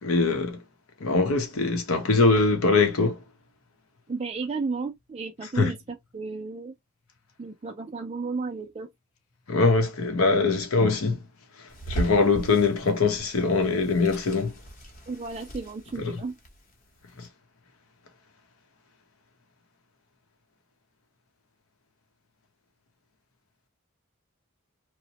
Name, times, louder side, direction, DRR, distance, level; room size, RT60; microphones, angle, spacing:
voice 1, 0.0-0.6 1.0-3.2 5.6-5.7 9.5-11.2 11.9-14.5 16.0-16.1 17.2-17.3, left 3 dB, 80° left, 0.8 m, -22 dB
voice 2, 4.1-6.8 7.4-8.9 15.1-16.4, right 4 dB, 30° right, 0.3 m, -33 dB
sound 1, 11.7-16.6 17.2-17.3, right 2 dB, 40° left, 0.8 m, -37 dB
2.9 x 2.1 x 2.7 m
head